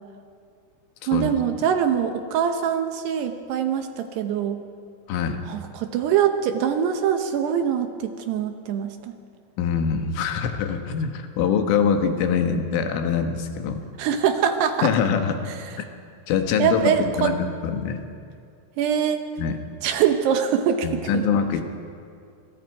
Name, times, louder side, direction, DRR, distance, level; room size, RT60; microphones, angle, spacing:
voice 1, 1.1-4.6 5.5-9.2 14.0-14.9 15.5-15.6 16.6-17.4 18.8-19.3 19.8-21.2, right 8 dB, 75° right, 7 dB, 2.7 m, -23 dB
voice 2, 5.1-5.4 9.6-13.8 14.8-15.4 16.3-18.1 19.4-19.6 20.8-21.6, left 7 dB, 90° left, 5 dB, 4.0 m, -24 dB
25.5 x 23.5 x 4.7 m, 2.4 s
omnidirectional pair, 5.5 m